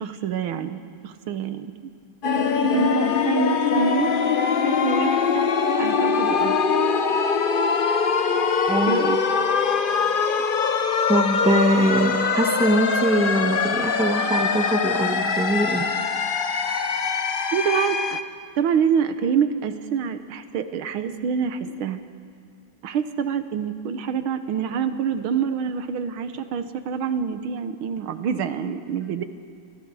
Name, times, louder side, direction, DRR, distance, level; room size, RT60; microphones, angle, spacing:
voice 1, 0.0-1.7 2.7-4.1 4.7-5.5 5.8-6.6 8.9-9.2 17.5-18.2 18.6-22.0 22.8-29.2, right 7 dB, 80° right, 10 dB, 1.8 m, -26 dB
sound 1, 2.2-18.2, left 5 dB, 90° left, 0.4 m, -22 dB
voice 2, 8.7-9.0 11.1-15.9, right 1 dB, 5° right, 4 dB, 1.1 m, -22 dB
27.5 x 25.5 x 4.8 m, 2.7 s
omnidirectional pair, 2.2 m